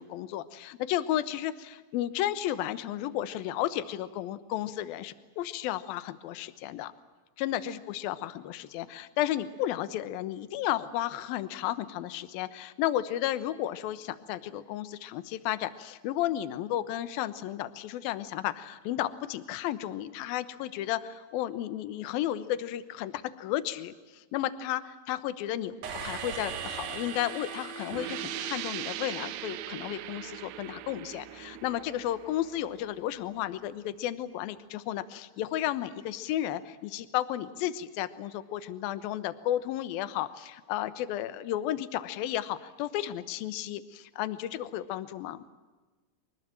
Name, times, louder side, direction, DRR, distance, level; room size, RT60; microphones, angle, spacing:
voice 1, 0.0-6.9 7.4-45.4, left 12 dB, 70° left, 13 dB, 2.6 m, -33 dB
sound 1, 25.8-29.7, right 6 dB, 55° right, 3.2 m, -40 dB
sound 2, 27.9-33.4, right 14 dB, 75° right, 2.8 m, -40 dB
24.5 x 20.5 x 8.9 m, 1.3 s
omnidirectional pair, 4.9 m